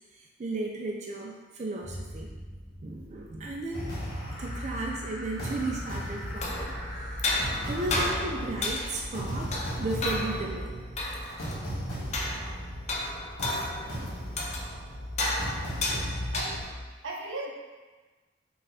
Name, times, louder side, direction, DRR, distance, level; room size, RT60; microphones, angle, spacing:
voice 1, 0.1-2.3 2.8-3.9 4.4-7.2 7.7-10.8, right 2 dB, 35° right, -1 dB, 0.4 m, -35 dB
Boom, 1.8-9.7, equal, 15° right, 1.0 m, -49 dB
sound 1, 3.7-16.6, equal, 55° left, 1.5 m, -36 dB
sound 2, 6.3-16.9, left 2 dB, 35° left, 0.6 m, -33 dB
voice 2, 14.0-14.4 16.3-16.6 17.0-17.5, right 2 dB, 80° right, -1 dB, 0.7 m, -37 dB
5.1 x 2.4 x 4.1 m, 1.3 s
head